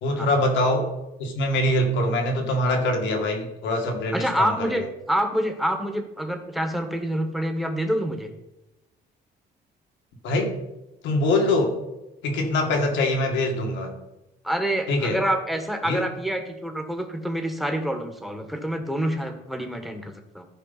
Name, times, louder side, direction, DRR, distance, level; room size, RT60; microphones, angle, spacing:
voice 1, 0.0-0.9 1.2-4.9 10.2-10.6 11.0-11.8 12.2-13.9 14.9-15.2 15.8-16.1, left 1 dB, 80° left, 3 dB, 1.9 m, -23 dB
voice 2, 4.1-8.3 14.4-20.4, right 1 dB, ahead, 5 dB, 1.4 m, -27 dB
13.5 x 5.0 x 4.1 m, 0.95 s
cardioid pair, 95°, 19 cm